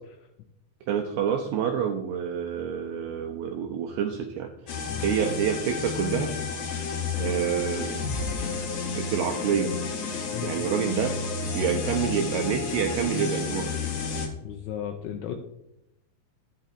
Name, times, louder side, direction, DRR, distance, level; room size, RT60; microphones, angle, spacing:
voice 1, 0.9-4.5 5.0-6.3 7.2-7.9 8.9-9.7 10.4-11.1 11.5-13.8, right 8 dB, 85° right, 3 dB, 2.3 m, -27 dB
sound 1, 4.7-14.3, left 5 dB, 65° left, 1.9 m, -31 dB
voice 2, 14.4-15.4, left 10 dB, 85° left, 5 dB, 2.3 m, -35 dB
10.5 x 8.6 x 2.5 m, 0.84 s
omnidirectional pair, 5.2 m